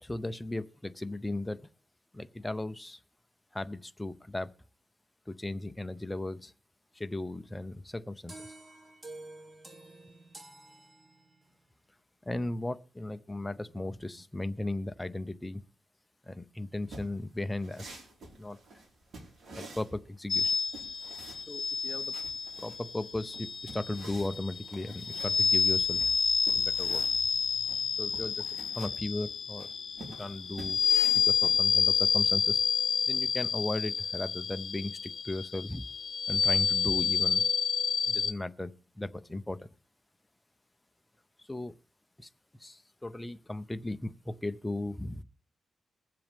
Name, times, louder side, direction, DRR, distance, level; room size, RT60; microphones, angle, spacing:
voice 1, 0.0-1.6 2.1-3.0 3.5-4.5 5.3-6.5 6.9-8.6 12.2-15.6 16.3-17.8 18.4-18.6 19.6-20.5 21.5-22.2 22.6-26.1 26.5-27.0 28.0-29.7 30.1-30.8 31.1-32.6 33.1-35.8 36.3-37.4 38.1-39.7 41.5-41.8 42.2-42.3 42.6-45.2, left 2 dB, 10° left, 0.6 m, -36 dB
sound 1, 8.3-11.6, right 2 dB, 20° right, 1.8 m, -49 dB
sound 2, 16.8-32.1, right 2 dB, 55° right, 4.3 m, -50 dB
sound 3, 20.3-38.3, left 6 dB, 55° left, 0.6 m, -29 dB
22.0 x 7.6 x 3.5 m
wide cardioid pair, 125°, 0 cm